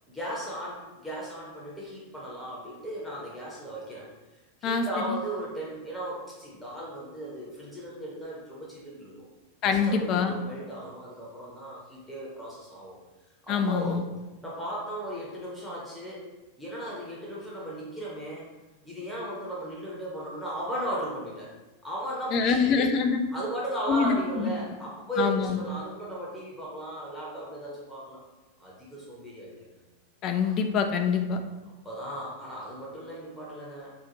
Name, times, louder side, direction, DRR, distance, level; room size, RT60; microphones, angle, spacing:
voice 1, 0.1-4.1 4.6-9.3 9.7-13.0 13.4-14.0 14.4-16.2 16.6-18.5 18.8-21.5 21.8-22.9 23.3-28.2 28.6-29.8 30.4-30.6 31.8-33.9, right 1 dB, 5° left, -6 dB, 0.8 m, -36 dB
voice 2, 4.6-5.2 9.6-10.3 13.5-14.0 22.3-23.3 23.9-24.5 25.2-25.6 30.2-31.4, left 5 dB, 35° left, 6 dB, 0.3 m, -25 dB
2.8 x 2.4 x 3.8 m, 1.1 s
figure-of-eight pair, 90°, 0 cm